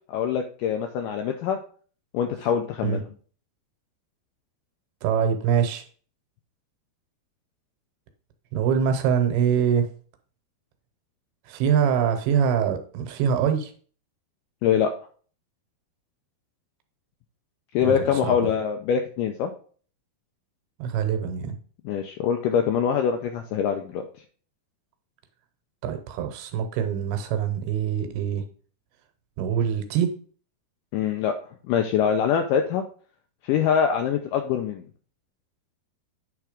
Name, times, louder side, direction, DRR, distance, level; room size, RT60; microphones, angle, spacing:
voice 1, 0.1-1.6 2.1-3.0 14.6-14.9 17.7-19.5 21.8-24.0 30.9-31.4 31.7-32.8 33.4-34.8, left 8 dB, 90° left, 5 dB, 1.9 m, -24 dB
voice 2, 5.0-5.8 8.5-9.9 11.5-13.7 17.8-18.4 20.8-21.6 25.8-28.4 29.4-30.1, right 8 dB, 80° right, 7 dB, 2.8 m, -24 dB
9.3 x 3.5 x 5.0 m, 0.43 s
omnidirectional pair, 4.5 m